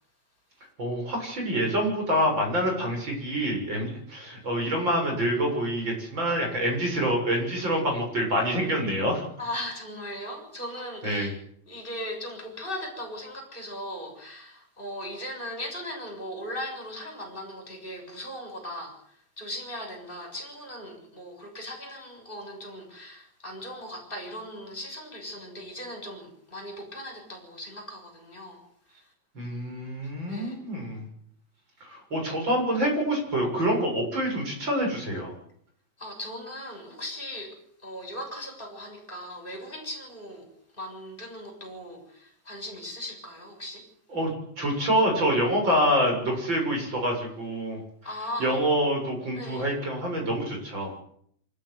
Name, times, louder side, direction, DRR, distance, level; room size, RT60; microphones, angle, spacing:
voice 1, 0.8-9.2 11.0-11.3 29.3-31.0 31.8-35.3 44.1-47.8 48.4-50.9, equal, 35° right, 1 dB, 7.9 m, -26 dB
voice 2, 9.4-11.4 11.7-28.6 29.0-29.1 30.3-30.6 36.0-40.5 40.7-43.8 48.0-48.6 49.3-49.7, left 1 dB, 15° left, 2 dB, 7.1 m, -38 dB
25.0 x 13.5 x 9.7 m, 0.66 s
omnidirectional pair, 3.8 m